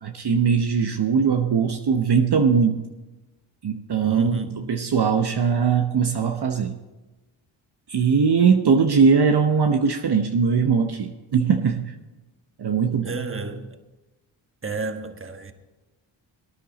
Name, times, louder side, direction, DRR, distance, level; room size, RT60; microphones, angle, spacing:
voice 1, 0.0-2.9 3.6-4.4 4.7-6.8 7.9-11.9 12.6-13.1, right 6 dB, 55° right, 1.0 m, -20 dB
voice 2, 4.0-4.8 13.0-13.8 14.6-15.5, right 3 dB, 25° right, 1.4 m, -32 dB
18.0 x 10.0 x 4.1 m
cardioid pair, 50°, 48 cm